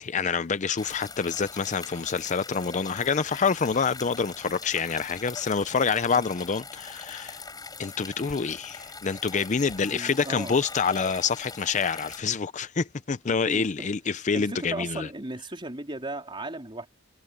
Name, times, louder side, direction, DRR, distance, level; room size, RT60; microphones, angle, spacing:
voice 1, 0.0-7.4 7.8-15.1, left 5 dB, 35° left, 0.5 m, -27 dB
sound 1, 0.8-12.2, left 4 dB, 20° left, 4.9 m, -42 dB
voice 2, 9.9-10.6 13.4-13.9 14.3-16.9, right 2 dB, 25° right, 3.6 m, -36 dB
head